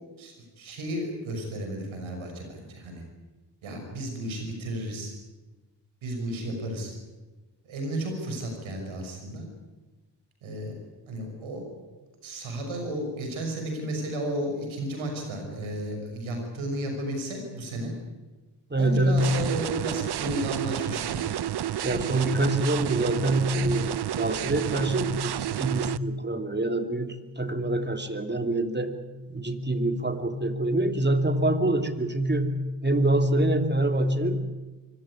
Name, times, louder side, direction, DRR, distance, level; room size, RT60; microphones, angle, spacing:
voice 1, 0.2-3.0 3.6-5.1 6.0-6.9 7.6-9.4 10.4-10.8 11.1-11.7 12.2-17.9 18.8-21.3, right 1 dB, 80° right, 3 dB, 6.1 m, -33 dB
voice 2, 18.7-19.3 21.8-29.0 29.3-34.5, right 1 dB, 20° right, 8 dB, 3.0 m, -25 dB
sound 1, 19.2-26.0, right 11 dB, 55° right, 0.8 m, -30 dB
24.5 x 16.0 x 9.8 m, 1.2 s
supercardioid pair, 45°, 47 cm